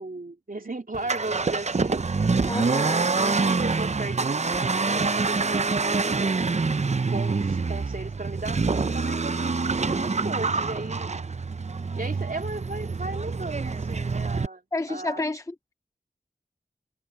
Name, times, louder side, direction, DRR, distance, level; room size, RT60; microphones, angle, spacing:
voice 1, 0.0-2.0 2.4-6.6 7.1-8.6 8.9-11.1 12.0-14.6 14.9-15.2, right 2 dB, 60° right, 2.7 m, -36 dB
Accelerating revving vroom, 0.9-14.5, right 4 dB, 45° right, 0.5 m, -26 dB
voice 2, 2.5-3.0 14.7-15.7, left 2 dB, 20° left, 0.5 m, -30 dB
wide cardioid pair, 55°, 16 cm